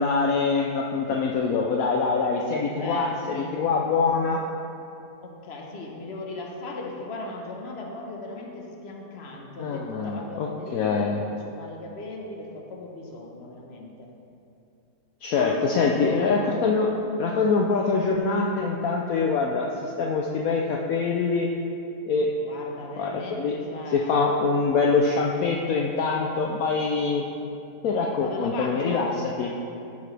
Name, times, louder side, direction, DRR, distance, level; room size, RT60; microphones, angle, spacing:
voice 1, 0.0-4.4 9.6-11.2 15.2-16.9 17.2-21.5 22.1-22.3 23.0-23.5 23.9-27.2 27.8-29.1 29.4-29.5, left 4 dB, 70° left, 0 dB, 1.0 m, -24 dB
voice 2, 2.8-3.5 5.2-14.1 15.4-16.3 22.2-24.3 28.2-29.1, left 2 dB, 45° left, 0 dB, 1.2 m, -37 dB
13.5 x 6.8 x 3.3 m, 2.7 s
omnidirectional pair, 1.7 m